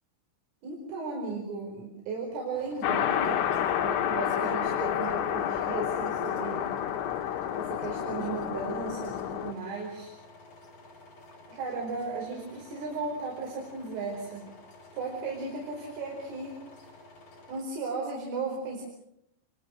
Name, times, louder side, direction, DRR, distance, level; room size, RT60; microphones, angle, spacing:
voice 1, 0.6-3.5 3.8-6.8 7.6-10.1 11.5-14.5 14.9-16.6 17.5-18.8, right 3 dB, 85° right, -1 dB, 7.4 m, -35 dB
sound 1, 2.5-17.6, left 2 dB, 45° left, 6.9 m, -52 dB
sound 2, 2.8-9.5, left 10 dB, 85° left, 4.2 m, -29 dB
28.5 x 25.0 x 6.5 m, 0.77 s
omnidirectional pair, 5.6 m